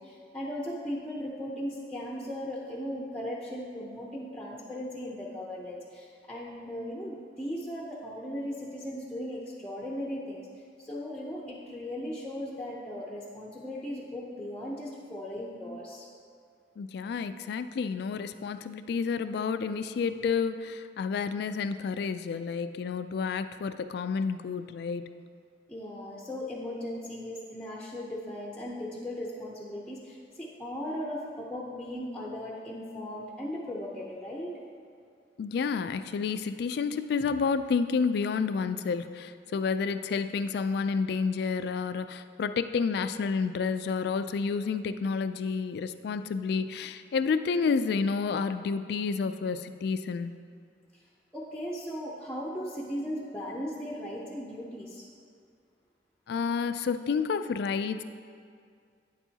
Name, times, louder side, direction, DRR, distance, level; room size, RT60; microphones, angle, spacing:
voice 1, 0.0-10.4 10.8-16.1 25.7-34.6 51.3-55.0, equal, 5° left, -4 dB, 0.6 m, -37 dB
voice 2, 16.8-25.1 35.4-50.3 56.3-58.0, left 5 dB, 65° left, 11 dB, 0.3 m, -30 dB
9.2 x 7.1 x 2.8 m, 2.2 s
head